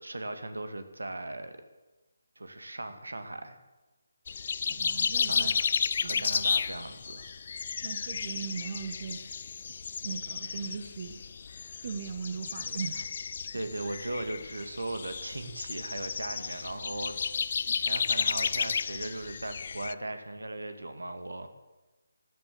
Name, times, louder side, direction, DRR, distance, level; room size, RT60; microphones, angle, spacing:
voice 1, 0.0-1.6 2.4-3.6 5.2-7.3 13.5-17.1 17.7-21.5, right 2 dB, 85° right, 8 dB, 1.9 m, -38 dB
sound 1, 4.3-19.9, left 6 dB, 50° left, 0.5 m, -33 dB
voice 2, 4.7-5.5 6.0-6.2 7.8-9.2 10.0-11.2 11.8-13.1, right 6 dB, 40° right, 7 dB, 1.4 m, -38 dB
13.5 x 11.0 x 8.0 m, 1.1 s
figure-of-eight pair, 155°, 0 cm